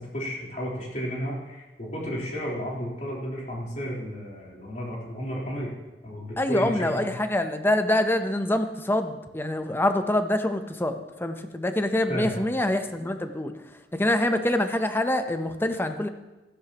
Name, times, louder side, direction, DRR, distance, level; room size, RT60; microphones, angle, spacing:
voice 1, 0.0-5.7 6.0-7.1 12.1-12.5, equal, 45° left, -4 dB, 3.8 m, -33 dB
voice 2, 6.4-13.5 13.9-16.1, left 1 dB, 15° left, 8 dB, 0.7 m, -25 dB
16.0 x 14.0 x 3.0 m, 1.1 s
head